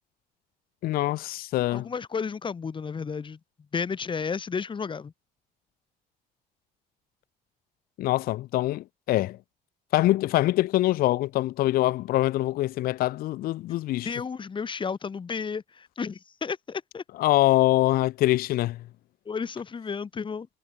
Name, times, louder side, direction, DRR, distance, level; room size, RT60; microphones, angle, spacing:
voice 1, 0.8-1.9 8.0-9.4 9.9-14.1 17.2-18.8, left 16 dB, 60° left, 0.4 m, -24 dB
voice 2, 1.7-3.4 3.7-5.1 13.7-13.8 14.0-17.0 19.2-20.5, left 5 dB, 30° left, 1.7 m, -32 dB
cardioid pair, 110°, 17 cm